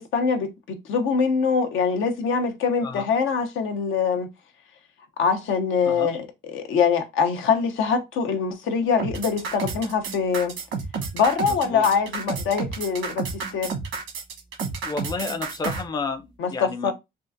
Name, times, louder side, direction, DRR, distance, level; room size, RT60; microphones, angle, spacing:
voice 1, 0.0-4.3 5.2-10.5 11.1-13.7 16.4-16.9, left 6 dB, 80° left, 0.7 m, -24 dB
sound 1, 9.0-15.8, right 5 dB, 85° right, 1.2 m, -30 dB
voice 2, 11.4-11.9 14.8-16.9, left 4 dB, 20° left, 0.4 m, -31 dB
3.6 x 2.4 x 2.5 m
cardioid pair, 90°, 20 cm